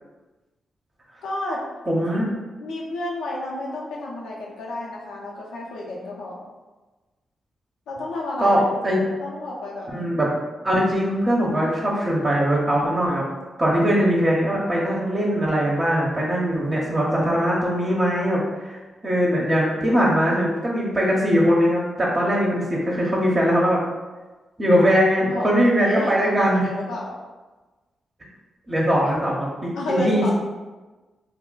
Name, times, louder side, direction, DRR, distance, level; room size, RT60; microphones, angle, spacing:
voice 1, 1.2-1.6 1.9-2.0 2.6-6.4 7.9-8.6 9.2-9.9 25.2-27.1 29.7-30.3, left 1 dB, 80° left, -3 dB, 0.6 m, -30 dB
voice 2, 1.9-2.3 8.4-9.0 9.9-10.3 10.6-13.2 13.6-23.8 24.6-26.7 28.7-30.3, equal, 35° right, -5 dB, 0.7 m, -21 dB
2.3 x 2.0 x 3.8 m, 1.2 s
supercardioid pair, 40°, 0 cm